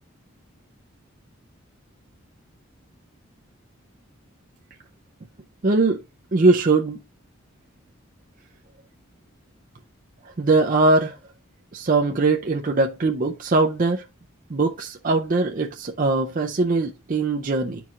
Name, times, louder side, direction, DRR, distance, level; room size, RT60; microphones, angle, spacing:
voice 1, 5.6-6.0 6.3-7.0 10.4-11.2 11.7-14.0 14.5-17.8, right 3 dB, 40° right, 0.5 m, -21 dB
10.5 x 4.6 x 2.5 m
head